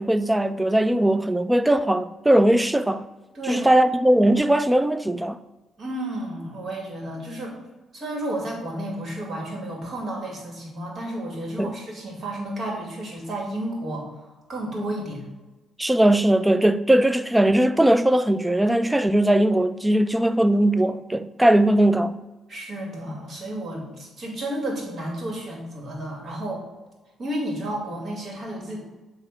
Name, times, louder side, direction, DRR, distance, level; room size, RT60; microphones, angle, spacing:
voice 1, 0.0-3.1 3.5-5.4 11.6-11.7 15.8-22.2, right 1 dB, 10° right, 0.4 m, -19 dB
voice 2, 3.3-3.7 5.8-7.6 7.9-15.2 22.5-26.6 27.2-28.8, right 1 dB, 50° right, 2.3 m, -32 dB
7.5 x 3.0 x 5.6 m
cardioid pair, 90°, 0 cm